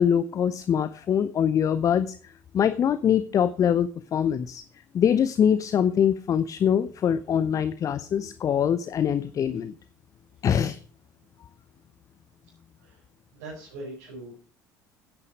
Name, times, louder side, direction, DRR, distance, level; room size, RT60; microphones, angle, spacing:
voice 1, 0.0-4.6 4.9-9.7 10.4-10.8, left 8 dB, 35° left, 14 dB, 0.7 m, -23 dB
voice 2, 13.3-14.4, right 1 dB, 65° right, -2 dB, 4.5 m, -41 dB
11.0 x 9.8 x 5.1 m, 0.40 s
figure-of-eight pair, 60°, 9 cm